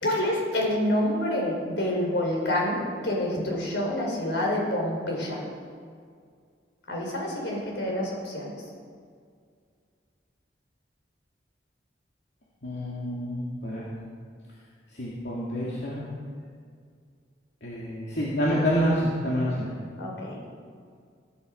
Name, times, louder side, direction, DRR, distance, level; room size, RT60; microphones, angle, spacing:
voice 1, 0.0-5.4 6.9-8.6 20.0-20.4, left 1 dB, 90° left, -1 dB, 4.8 m, -27 dB
voice 2, 12.6-13.9 14.9-16.1 17.6-19.7, equal, 70° left, -6 dB, 2.5 m, -28 dB
18.5 x 11.5 x 5.3 m, 2.1 s
head